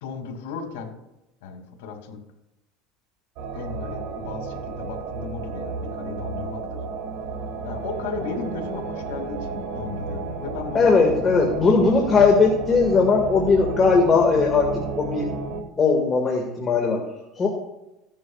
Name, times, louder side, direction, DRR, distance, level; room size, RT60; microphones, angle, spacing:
voice 1, 0.0-1.0 1.4-2.2 3.5-6.8 7.6-11.5, left 5 dB, 85° left, 3 dB, 2.4 m, -35 dB
sound 1, 3.4-15.6, right 4 dB, 55° right, 1.7 m, -32 dB
voice 2, 10.7-15.3 15.8-17.0 17.4-17.5, left 4 dB, 25° left, 1 dB, 1.8 m, -19 dB
16.0 x 10.5 x 2.4 m, 0.93 s
supercardioid pair, 140°, 0 cm